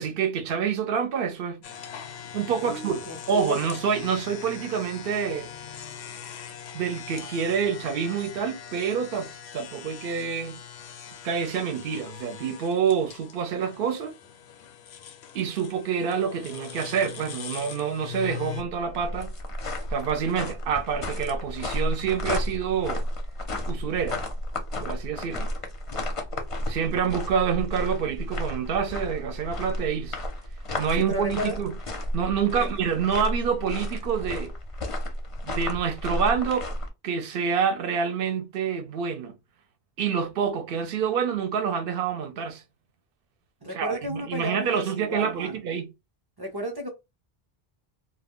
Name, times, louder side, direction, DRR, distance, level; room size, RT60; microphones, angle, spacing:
voice 1, 0.0-1.6 2.3-3.0 3.3-5.5 6.7-9.3 9.5-10.6 11.2-14.1 15.3-19.3 19.9-23.1 23.7-24.2 24.8-25.5 26.7-30.2 30.8-31.7 32.1-34.5 35.4-36.7 37.0-39.3 40.0-42.6 43.7-45.9, right 7 dB, 65° right, 0.8 m, -27 dB
sound 1, 1.6-18.6, left 9 dB, 90° left, 0.8 m, -41 dB
voice 2, 2.6-3.6 31.0-31.6 32.6-32.7 43.6-45.6 46.4-46.9, equal, 30° right, 0.4 m, -33 dB
sound 2, 18.6-36.9, left 1 dB, 40° left, 0.5 m, -32 dB
2.3 x 2.1 x 3.5 m
omnidirectional pair, 1.1 m